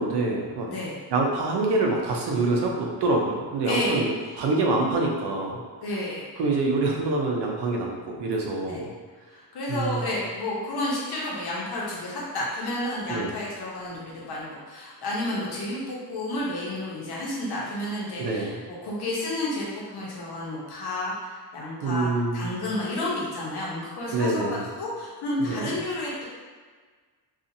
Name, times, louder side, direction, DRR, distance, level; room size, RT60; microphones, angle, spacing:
voice 1, 0.0-0.7 1.1-5.6 6.4-8.9 9.7-10.1 13.1-13.3 18.2-18.6 21.8-22.5 24.1-24.7 25.5-25.7, right 2 dB, 70° right, 0 dB, 0.6 m, -26 dB
voice 2, 3.6-4.3 5.8-6.3 8.7-8.8 9.3-18.5 18.8-26.2, left 1 dB, 65° left, -5 dB, 0.9 m, -31 dB
2.7 x 2.4 x 2.6 m, 1.5 s
wide cardioid pair, 170°, 41 cm